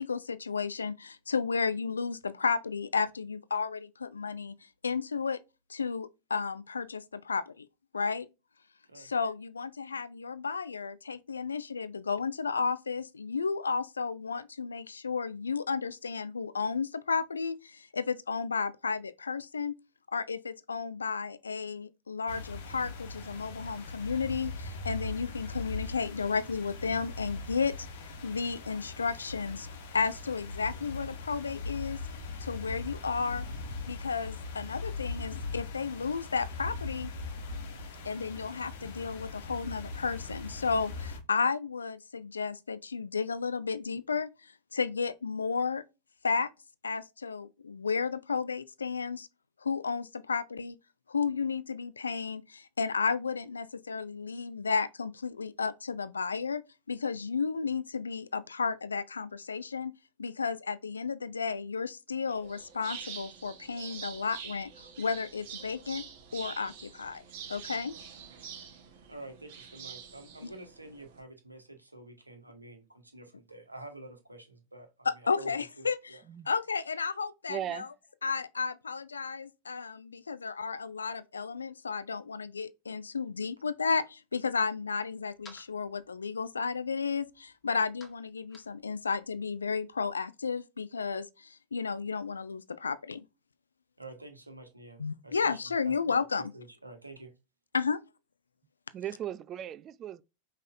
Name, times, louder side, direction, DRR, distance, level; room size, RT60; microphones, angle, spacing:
voice 1, 0.0-4.6 4.8-5.4 5.7-7.7 7.9-8.3 9.0-19.8 20.1-27.9 28.2-29.7 29.9-32.0 32.4-33.5 33.9-37.1 38.1-45.8 46.2-46.5 46.8-49.3 49.6-50.8 51.1-56.6 56.9-59.9 60.2-64.7 65.0-66.0 66.3-67.2 67.5-67.9 70.4-70.5 75.1-76.2 76.5-77.9 78.2-93.2 95.0-96.5 97.7-98.0, left 5 dB, 75° left, 0.3 m, -33 dB
sound 1, 22.3-41.2, left 3 dB, 55° left, 1.1 m, -40 dB
sound 2, 62.3-71.2, right 7 dB, 50° right, 1.1 m, -46 dB
voice 2, 69.1-76.2 94.0-95.9 96.5-97.3, right 2 dB, 85° right, 1.1 m, -48 dB
voice 3, 77.5-77.9 98.9-100.2, right 11 dB, 30° right, 0.3 m, -37 dB
sound 3, 84.5-90.2, left 3 dB, 20° left, 1.3 m, -60 dB
5.5 x 3.2 x 2.5 m
figure-of-eight pair, 90°, 0 cm